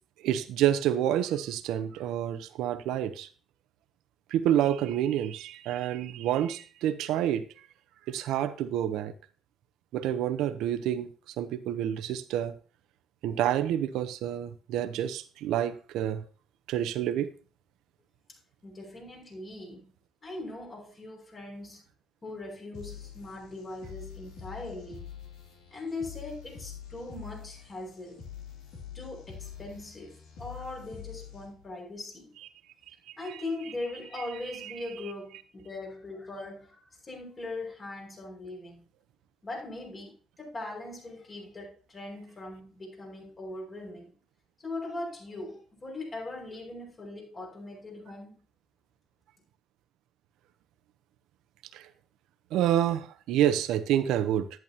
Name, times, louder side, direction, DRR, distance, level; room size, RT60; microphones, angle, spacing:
voice 1, 0.2-3.3 4.3-7.4 8.1-9.1 9.9-12.5 13.2-16.2 16.7-17.3 33.3-33.4 34.6-34.7 51.7-51.9 52.5-54.5, right 11 dB, 75° right, 0.8 m, -28 dB
voice 2, 18.6-19.9 20.2-21.8 22.2-25.1 25.7-28.2 28.9-32.3 33.2-38.8 39.4-44.1 44.6-48.3, left 2 dB, 35° left, 6.0 m, -40 dB
sound 1, 22.7-31.7, left 8 dB, 80° left, 2.8 m, -45 dB
11.0 x 10.5 x 2.9 m
supercardioid pair, 70°, 0 cm